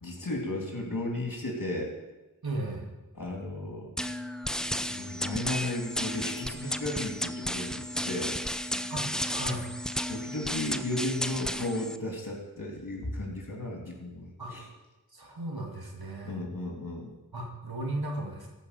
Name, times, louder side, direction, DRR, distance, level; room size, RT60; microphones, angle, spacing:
voice 1, 0.0-1.9 3.1-3.9 4.7-8.4 10.1-14.7 16.2-17.1, left 1 dB, 55° left, 0 dB, 3.0 m, -34 dB
voice 2, 2.4-2.9 8.9-9.6 14.4-14.5 15.1-16.4 17.3-18.5, right 1 dB, 75° right, 0 dB, 2.3 m, -35 dB
sound 1, 4.0-12.0, equal, ahead, 0.5 m, -33 dB
15.5 x 5.2 x 6.9 m, 1.1 s
wide cardioid pair, 40°, 37 cm